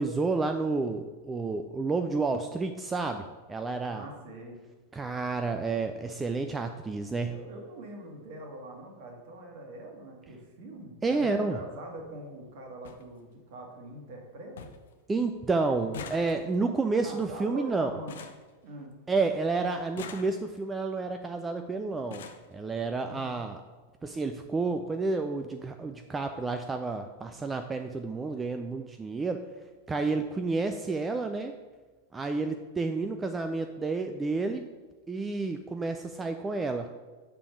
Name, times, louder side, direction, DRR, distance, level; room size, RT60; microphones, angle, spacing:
voice 1, 0.0-4.1 4.9-7.3 11.0-11.6 15.1-18.0 19.1-23.6 24.0-29.4 29.9-31.5 32.1-34.7 35.1-36.9, right 3 dB, 15° right, 6 dB, 0.3 m, -30 dB
voice 2, 3.9-4.6 7.3-14.7 17.0-18.2 18.6-19.0 23.1-23.4, right 1 dB, 50° right, 2 dB, 1.5 m, -44 dB
sound 1, 10.7-10.9 12.1-12.2 12.5-12.6 12.8-13.0 13.5-14.0 14.2-14.3 14.6-14.9 15.2-19.2 19.8-20.8 21.6-21.7 21.9-22.5 23.5-23.6 23.9-24.1 24.4-24.5, left 6 dB, 60° left, 0.5 m, -46 dB
6.7 x 3.5 x 6.0 m, 1.3 s
figure-of-eight pair, 90°, 0 cm